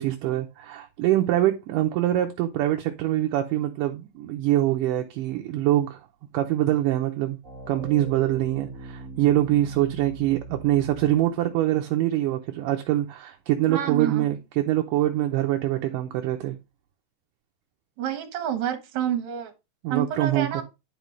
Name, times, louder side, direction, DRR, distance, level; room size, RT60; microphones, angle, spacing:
voice 1, 0.0-6.0 6.3-7.4 7.7-16.6 19.8-20.6, right 13 dB, 75° right, 2.2 m, -24 dB
sound 1, 7.4-11.4, right 3 dB, 25° right, 2.3 m, -40 dB
voice 2, 13.7-14.3 18.0-19.5 19.9-20.6, right 9 dB, 60° right, 2.4 m, -28 dB
10.0 x 5.3 x 3.2 m
omnidirectional pair, 4.1 m